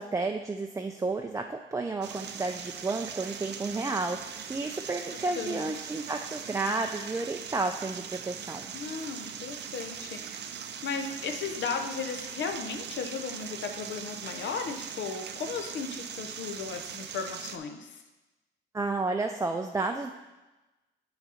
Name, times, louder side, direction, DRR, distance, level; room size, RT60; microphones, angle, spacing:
voice 1, 0.0-8.7 18.7-20.1, right 3 dB, 15° right, 3 dB, 0.4 m, -31 dB
sound 1, 2.0-17.6, right 7 dB, 60° right, 0.6 m, -40 dB
voice 2, 5.4-5.8 8.7-18.0, left 5 dB, 70° left, 6 dB, 0.8 m, -36 dB
8.1 x 4.1 x 5.0 m, 1.1 s
cardioid pair, 90°, 20 cm